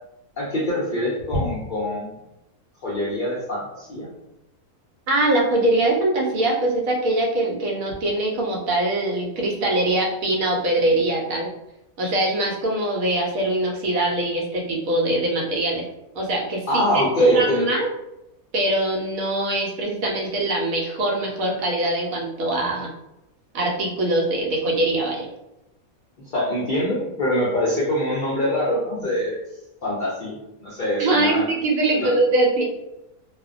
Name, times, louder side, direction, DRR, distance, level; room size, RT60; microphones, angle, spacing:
voice 1, 0.4-2.2 2.8-4.1 16.7-17.6 26.3-29.4 29.8-31.5 31.9-32.1, left 1 dB, 75° left, -6 dB, 0.4 m, -24 dB
voice 2, 5.1-11.5 12.0-15.8 16.1-17.9 18.5-22.9 23.5-25.3 31.0-32.6, right 1 dB, 75° right, -1 dB, 1.0 m, -22 dB
2.5 x 2.1 x 2.4 m, 0.89 s
omnidirectional pair, 1.5 m